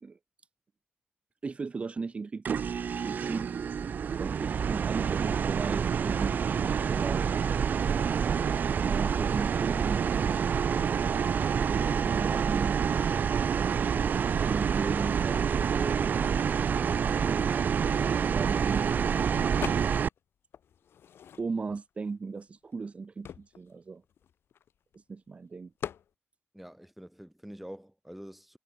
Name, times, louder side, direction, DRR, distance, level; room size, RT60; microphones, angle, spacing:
voice 1, 1.4-2.6 3.0-3.5 4.2-6.4 6.7-7.4 8.8-10.6 11.7-12.8 13.5-16.2 17.0-19.5 21.4-24.0 24.9-25.7, right 4 dB, 30° right, 0.9 m, -37 dB
sound 1, 2.4-20.1, right 7 dB, 45° right, 0.4 m, -27 dB
sound 2, 19.6-20.2 20.5-21.8 22.4-22.5 22.7-25.0 25.8-26.1, left 9 dB, 70° left, 1.4 m, -41 dB
voice 2, 26.5-28.6, equal, 5° right, 5.3 m, -46 dB
wide cardioid pair, 140°, 4 cm